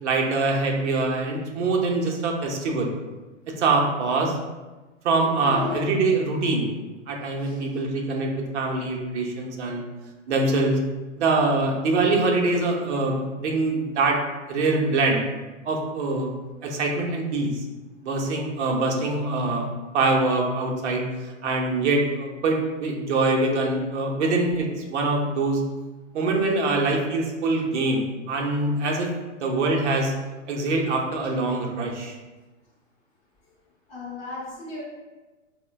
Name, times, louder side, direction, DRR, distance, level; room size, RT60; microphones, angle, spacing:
voice 1, 0.0-2.9 3.6-4.4 5.0-6.7 7.1-9.8 10.3-10.8 11.2-14.2 14.5-15.2 15.6-16.3 16.6-17.6 18.0-19.7 19.9-25.6 26.1-29.1 29.4-30.2 30.5-32.1, right 3 dB, 60° right, 0 dB, 0.7 m, -24 dB
voice 2, 5.4-5.9 7.2-7.6 33.9-34.8, left 4 dB, 15° left, -8 dB, 0.7 m, -34 dB
4.2 x 2.1 x 2.2 m, 1.2 s
hypercardioid pair, 155°, 39 cm